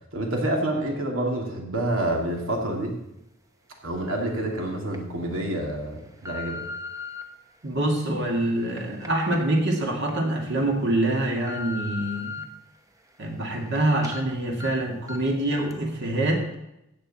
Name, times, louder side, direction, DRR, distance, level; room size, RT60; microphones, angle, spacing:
voice 1, 0.1-3.0 3.8-6.6, right 1 dB, 85° right, 1 dB, 2.5 m, -28 dB
sound 1, 3.9-4.0 4.7-5.0 5.6-7.2 7.9-10.2 10.6-10.7 11.1-12.4 12.9-13.8 14.0-14.2 14.6-14.7 15.1-15.4 15.7-15.8, left 3 dB, 15° right, 0.9 m, -39 dB
voice 2, 7.6-12.5 13.2-16.5, right 1 dB, 60° right, 1 dB, 2.2 m, -25 dB
15.0 x 8.1 x 4.2 m, 0.86 s
head